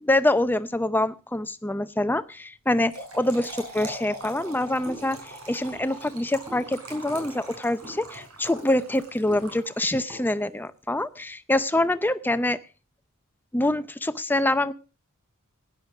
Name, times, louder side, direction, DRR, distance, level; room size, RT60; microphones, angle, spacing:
voice 1, 0.0-5.2 5.5-12.6 13.5-14.7, left 1 dB, 10° left, 12 dB, 0.6 m, -25 dB
Trickle dribble / Fill (with liquid), 2.7-10.1, right 2 dB, 75° right, 6.3 m, -42 dB
sound 1, 4.8-10.6, right 1 dB, 20° right, 6.6 m, -45 dB
16.0 x 10.5 x 4.9 m, 0.35 s
head